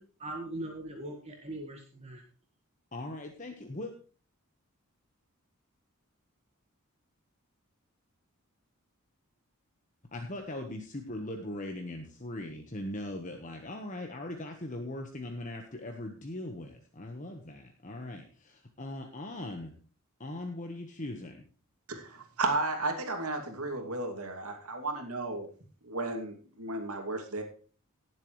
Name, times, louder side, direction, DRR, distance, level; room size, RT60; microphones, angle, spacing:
voice 1, 0.0-2.2, right 1 dB, 30° right, 2 dB, 1.6 m, -40 dB
voice 2, 2.9-3.9 10.1-19.7 20.2-21.4, left 1 dB, 35° left, 3 dB, 1.3 m, -40 dB
voice 3, 21.9-25.5 25.8-27.4, right 2 dB, 90° right, 4 dB, 2.6 m, -34 dB
18.5 x 7.7 x 3.2 m, 0.39 s
head